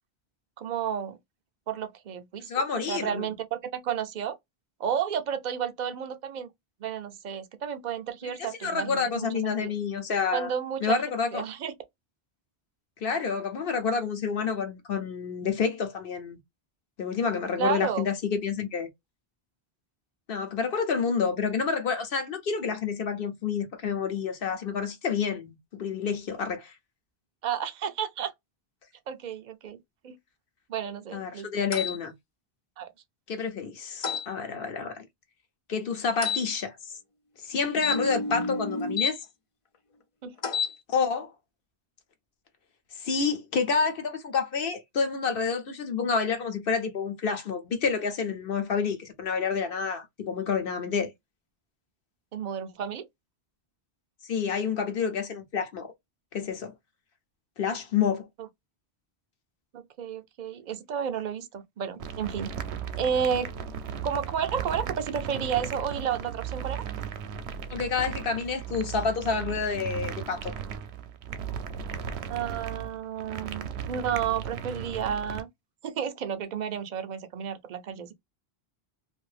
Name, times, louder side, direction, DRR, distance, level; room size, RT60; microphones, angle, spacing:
voice 1, 0.6-1.2 1.7-4.3 4.8-6.5 6.8-9.7 10.3-11.7 17.6-18.1 27.4-28.3 29.1-29.8 30.0-30.2 30.7-31.5 32.8-32.9 40.2-40.3 52.3-53.1 59.7-62.5 63.0-63.5 64.0-66.8 72.3-75.5 75.8-78.1, right 8 dB, 55° right, 0.6 m, -32 dB
voice 2, 2.5-3.3 8.2-10.5 10.8-11.4 13.0-16.4 17.0-18.9 20.3-26.7 31.1-32.1 33.3-35.1 35.7-36.8 37.4-39.2 40.9-41.3 43.0-51.1 54.3-55.9 56.3-56.7 57.6-58.3 67.7-70.5, left 5 dB, 65° left, 0.9 m, -29 dB
sound 1, 31.7-32.0 34.0-34.3 36.2-36.4 37.8-39.1 40.4-40.7, left 5 dB, 50° left, 0.4 m, -29 dB
sound 2, 62.0-75.4, right 7 dB, 80° right, 0.8 m, -36 dB
2.6 x 2.5 x 3.2 m
omnidirectional pair, 1.1 m